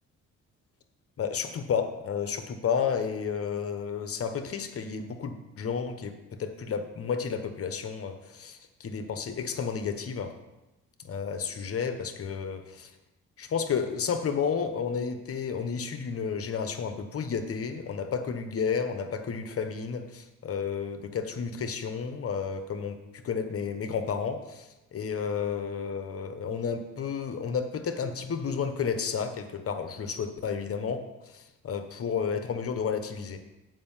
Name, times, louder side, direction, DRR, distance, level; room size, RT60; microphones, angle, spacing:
voice 1, 1.2-10.3 11.0-12.9 13.4-33.4, left 6 dB, 50° left, 8 dB, 1.0 m, -32 dB
7.7 x 5.3 x 7.2 m, 0.98 s
cardioid pair, 90°, 30 cm